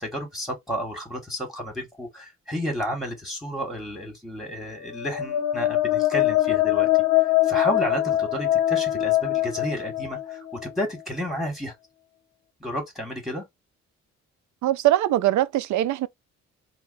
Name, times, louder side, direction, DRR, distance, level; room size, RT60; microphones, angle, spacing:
voice 1, 0.0-6.9 7.2-11.8 12.6-13.5, equal, ahead, 1.7 m, -32 dB
sound 1, 4.9-10.7, left 14 dB, 65° left, 0.6 m, -23 dB
voice 2, 14.6-16.1, right 14 dB, 70° right, 0.5 m, -22 dB
3.9 x 2.0 x 4.0 m
cardioid pair, 90°, 30 cm